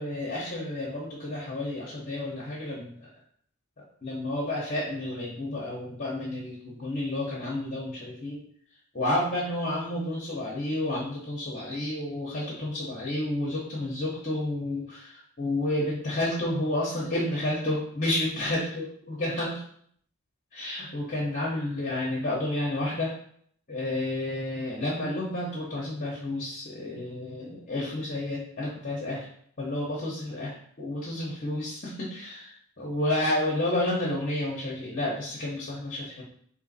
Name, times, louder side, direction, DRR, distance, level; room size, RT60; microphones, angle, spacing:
voice 1, 0.0-3.1 3.8-8.4 8.9-19.6 20.5-23.1 23.7-29.3 29.6-36.2, left 1 dB, 40° left, -6 dB, 0.9 m, -30 dB
3.8 x 2.9 x 4.0 m, 0.63 s
head